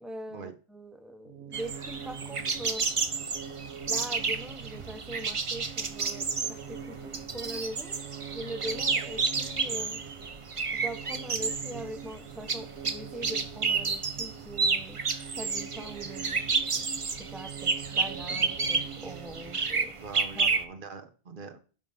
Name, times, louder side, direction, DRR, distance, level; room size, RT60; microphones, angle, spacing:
voice 1, 0.0-2.9 3.9-8.0 8.3-10.0 10.7-15.0 15.4-16.4 17.1-20.0 20.4-20.5, right 1 dB, ahead, 0.4 m, -42 dB
sound 1, 1.2-20.1, right 7 dB, 80° right, 1.0 m, -44 dB
sound 2, 1.5-20.6, right 4 dB, 35° right, 0.7 m, -31 dB
voice 2, 19.9-21.6, right 5 dB, 55° right, 1.1 m, -43 dB
10.5 x 3.7 x 5.5 m
omnidirectional pair, 1.1 m